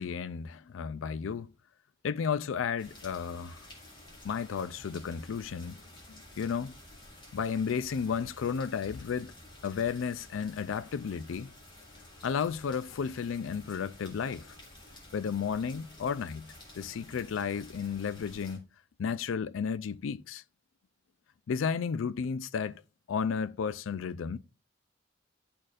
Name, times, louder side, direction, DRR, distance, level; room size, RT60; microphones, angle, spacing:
voice 1, 0.0-1.5 2.0-3.6 4.2-5.8 6.1-6.7 7.3-9.3 9.6-11.5 12.2-14.5 15.1-16.5 16.8-18.7 19.0-20.4 21.5-22.8 23.1-24.4, left 6 dB, 85° left, 0.4 m, -33 dB
sound 1, 2.8-18.6, left 1 dB, 25° left, 2.6 m, -52 dB
12.0 x 4.3 x 2.5 m
head